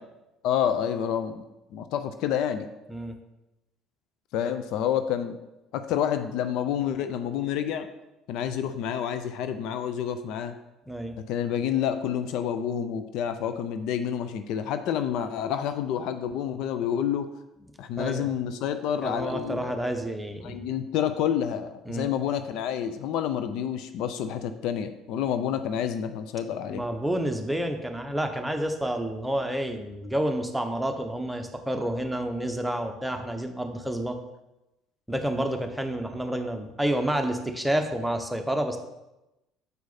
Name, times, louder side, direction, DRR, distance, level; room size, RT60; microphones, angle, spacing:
voice 1, 0.4-1.4 1.7-2.7 4.3-5.4 5.7-7.9 8.3-10.5 11.3-17.3 17.8-19.8 20.4-26.8, left 9 dB, 65° left, 9 dB, 0.4 m, -28 dB
voice 2, 18.0-18.3 19.0-20.6 21.9-22.1 26.7-34.2 35.1-38.8, right 1 dB, 5° right, 4 dB, 0.9 m, -29 dB
6.7 x 4.7 x 4.1 m, 0.96 s
hypercardioid pair, 65°, 0 cm